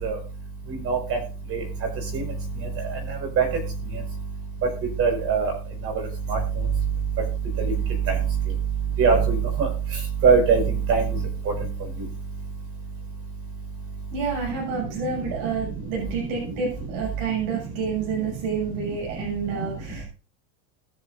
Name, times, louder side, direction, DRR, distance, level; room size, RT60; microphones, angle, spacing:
voice 1, 5.0-5.5 6.3-6.4 9.0-9.7 10.2-10.6 10.9-11.0, right 5 dB, 35° right, 2 dB, 5.6 m, -19 dB
voice 2, 14.1-20.0, right 5 dB, 55° right, -2 dB, 6.8 m, -29 dB
21.0 x 7.7 x 2.6 m, 0.35 s
supercardioid pair, 160°, 41 cm